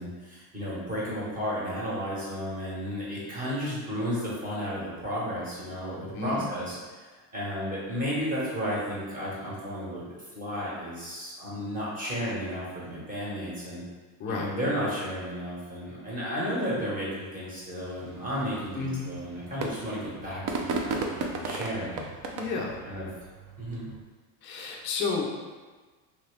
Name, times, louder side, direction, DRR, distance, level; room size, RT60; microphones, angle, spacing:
voice 1, 0.0-6.8 7.3-10.0 10.3-13.8 14.3-22.1 22.9-23.1 23.6-23.9, equal, 20° right, -8 dB, 1.2 m, -33 dB
voice 2, 6.1-6.5 14.2-14.5 18.7-19.1 22.3-22.8 24.4-25.3, left 4 dB, 30° left, -2 dB, 0.4 m, -31 dB
sound 1, 17.8-24.0, right 3 dB, 45° right, 0.5 m, -36 dB
3.0 x 2.7 x 3.3 m, 1.4 s
supercardioid pair, 130°, 45 cm